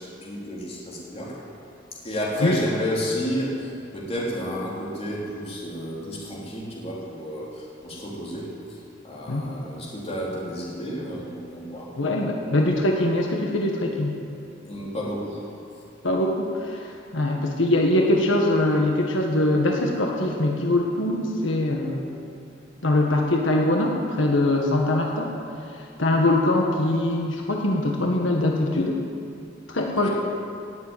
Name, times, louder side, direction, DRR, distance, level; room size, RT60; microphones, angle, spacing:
voice 1, 0.0-1.4 1.9-8.8 9.0-11.9 14.6-15.5 30.0-30.1, equal, 35° left, -5 dB, 3.9 m, -31 dB
voice 2, 12.0-14.1 16.0-22.1 22.8-25.3 25.7-29.0 29.7-30.1, left 1 dB, 90° left, 0 dB, 1.6 m, -23 dB
18.5 x 7.7 x 9.3 m, 2.5 s
head